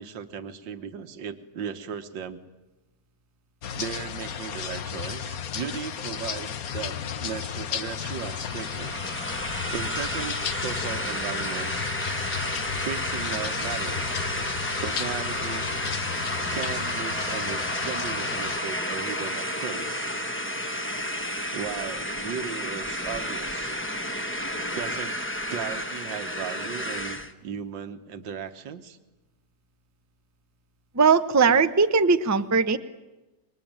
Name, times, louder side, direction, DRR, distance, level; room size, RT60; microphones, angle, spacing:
voice 1, 0.0-2.4 3.8-9.0 9.7-11.9 12.8-14.4 14.8-15.7 16.5-20.1 21.5-23.7 24.7-25.2 25.5-29.0, right 7 dB, 80° right, 9 dB, 2.0 m, -36 dB
sound 1, 3.6-18.6, left 8 dB, 55° left, 1.4 m, -34 dB
sound 2, 8.0-27.3, equal, 10° left, 1.2 m, -31 dB
voice 2, 30.9-32.8, right 5 dB, 15° right, 10 dB, 0.5 m, -19 dB
27.0 x 23.0 x 8.9 m, 1.1 s
omnidirectional pair, 2.0 m